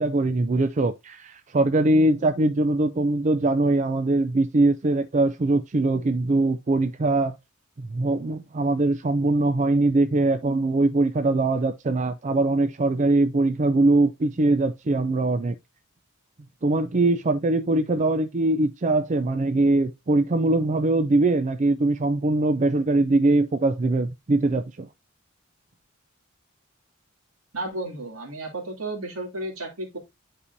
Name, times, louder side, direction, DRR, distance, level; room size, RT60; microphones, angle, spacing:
voice 1, 0.0-7.4 7.8-15.6 16.6-24.9, right 2 dB, 35° right, 0.4 m, -22 dB
voice 2, 27.5-30.0, right 2 dB, 80° right, 2.7 m, -33 dB
9.9 x 4.9 x 2.7 m
head